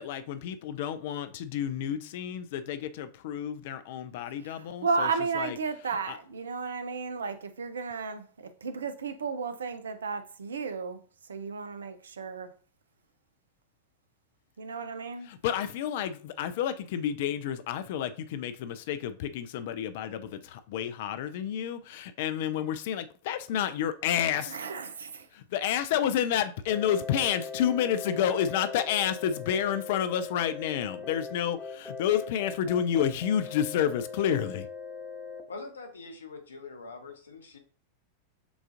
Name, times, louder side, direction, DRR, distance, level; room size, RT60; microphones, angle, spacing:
voice 1, 0.0-5.1 5.4-5.6 6.1-6.2 15.3-24.6 25.3-34.7, left 9 dB, 50° left, 0.4 m, -30 dB
voice 2, 4.4-11.0 11.3-12.5 14.6-15.3 24.4-25.3, right 4 dB, 70° right, 0.4 m, -33 dB
sound 1, 26.7-35.4, left 4 dB, ahead, 0.7 m, -40 dB
voice 3, 35.5-37.6, left 3 dB, 70° left, 0.8 m, -43 dB
6.8 x 2.4 x 2.5 m
figure-of-eight pair, 90°, 0 cm